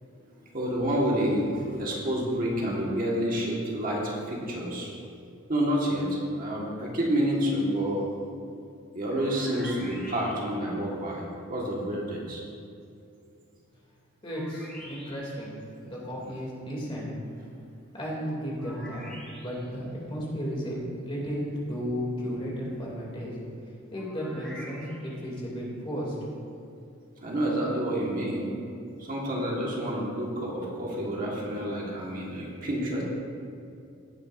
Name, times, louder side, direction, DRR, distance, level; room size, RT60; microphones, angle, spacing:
voice 1, 0.5-4.9 5.5-8.0 8.9-11.2 11.5-12.4 27.2-28.5 29.0-33.0, equal, 40° right, -4 dB, 1.6 m, -28 dB
sound 1, 9.1-10.8 14.3-15.5 18.6-19.8 23.9-25.3, equal, 5° left, 2.4 m, -46 dB
voice 2, 14.2-17.1 17.9-19.0 19.4-20.8 21.0-23.3 23.9-26.2, equal, 25° left, -4 dB, 2.6 m, -34 dB
17.0 x 8.7 x 2.6 m, 2.5 s
head